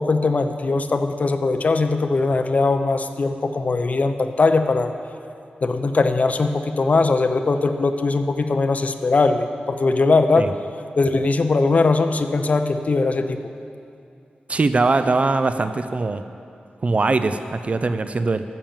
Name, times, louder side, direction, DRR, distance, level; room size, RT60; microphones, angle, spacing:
voice 1, 0.0-4.9 5.6-10.5 11.0-13.4, left 3 dB, 50° left, 7 dB, 0.7 m, -20 dB
voice 2, 14.5-16.2 16.8-18.4, right 3 dB, 40° right, 10 dB, 0.4 m, -21 dB
12.5 x 7.4 x 7.2 m, 2.5 s
wide cardioid pair, 100°, 3 cm